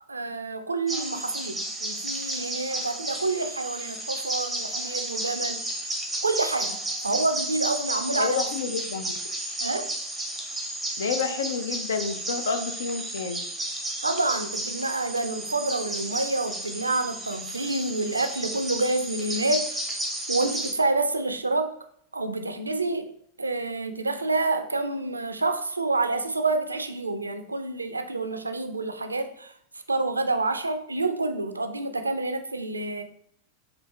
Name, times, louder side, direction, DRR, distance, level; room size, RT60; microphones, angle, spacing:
voice 1, 0.1-5.6 6.2-6.8 7.0-8.4 9.6-9.9 14.0-19.9 20.3-21.7 22.1-23.1 23.4-29.5 29.9-33.0, right 2 dB, 80° right, 8 dB, 0.3 m, -28 dB
sound 1, 0.9-20.7, right 1 dB, 5° right, 0.6 m, -33 dB
voice 2, 8.2-9.1 11.0-13.4, left 5 dB, 65° left, 9 dB, 0.4 m, -29 dB
4.4 x 2.5 x 3.3 m, 0.68 s
figure-of-eight pair, 90°, 0 cm